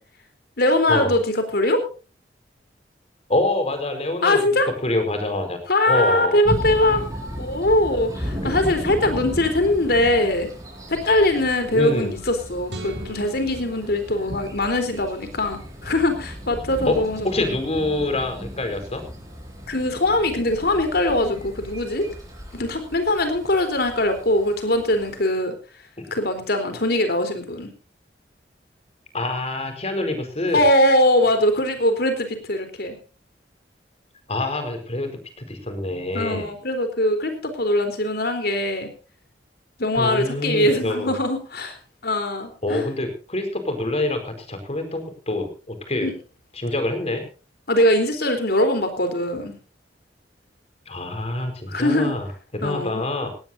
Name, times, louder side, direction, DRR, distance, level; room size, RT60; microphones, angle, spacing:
voice 1, 0.6-1.8 4.2-4.7 5.7-7.0 7.4-10.5 11.0-17.6 19.7-22.1 22.5-25.5 26.1-27.7 30.5-33.0 36.1-38.9 39.8-41.8 42.0-42.9 46.0-46.1 47.7-49.6 51.7-52.1 52.6-53.0, left 1 dB, 60° left, 8 dB, 3.8 m, -21 dB
voice 2, 3.3-4.4 4.8-5.6 5.9-6.4 8.4-8.5 11.7-12.1 16.8-17.0 17.2-19.0 26.0-26.1 29.1-30.7 34.3-35.2 35.5-36.4 40.0-41.2 42.6-46.1 46.5-47.2 50.9-52.3 52.5-53.3, left 2 dB, 35° left, 7 dB, 4.6 m, -26 dB
sound 1, 6.4-25.2, equal, 20° right, 5.9 m, -35 dB
sound 2, 12.7-15.0, right 2 dB, 70° right, 3.9 m, -40 dB
18.0 x 18.0 x 2.7 m, 0.35 s
head